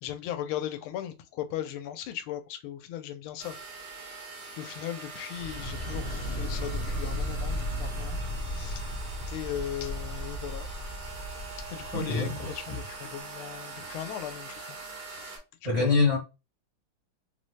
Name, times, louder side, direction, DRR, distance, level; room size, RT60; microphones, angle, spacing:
voice 1, 0.0-3.5 4.6-8.2 8.5-8.8 9.3-10.7 11.7-14.8 15.0-15.4 15.8-16.0, left 11 dB, 90° left, 1.4 m, -37 dB
sound 1, 3.4-15.4, right 3 dB, 75° right, 2.0 m, -43 dB
sound 2, 5.3-12.9, left 1 dB, 20° left, 0.7 m, -35 dB
voice 2, 11.9-12.3 15.6-16.2, left 4 dB, 25° right, 0.9 m, -24 dB
4.1 x 2.1 x 3.0 m
omnidirectional pair, 2.3 m